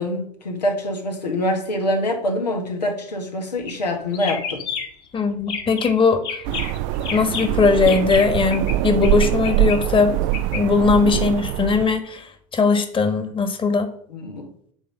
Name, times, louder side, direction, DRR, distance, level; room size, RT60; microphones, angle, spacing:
voice 1, 0.0-4.6 14.1-14.5, left 1 dB, 85° left, 1.5 m, -25 dB
sound 1, 3.6-3.8 4.1-5.1 5.4-5.9 6.2-8.7 9.0-10.6, left 6 dB, 50° left, 1.8 m, -31 dB
voice 2, 5.1-6.4 7.1-10.1 10.5-13.9, left 4 dB, 25° left, 1.5 m, -19 dB
sound 2, 6.4-12.0, right 14 dB, 55° right, 0.5 m, -23 dB
9.9 x 3.8 x 6.8 m
hypercardioid pair, 80°, 21 cm